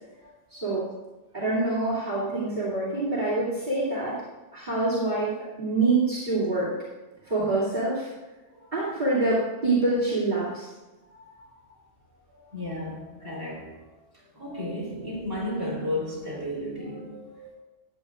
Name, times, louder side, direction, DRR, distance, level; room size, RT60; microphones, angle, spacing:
voice 1, 0.5-0.9 1.3-4.1 4.5-5.3 5.6-6.7 7.3-8.1 8.7-10.7, right 2 dB, 40° right, 2.7 m, -25 dB
voice 2, 11.1-11.8 12.3-17.6, left 1 dB, 20° right, 3.6 m, -35 dB
14.5 x 9.3 x 2.4 m
omnidirectional pair, 1.2 m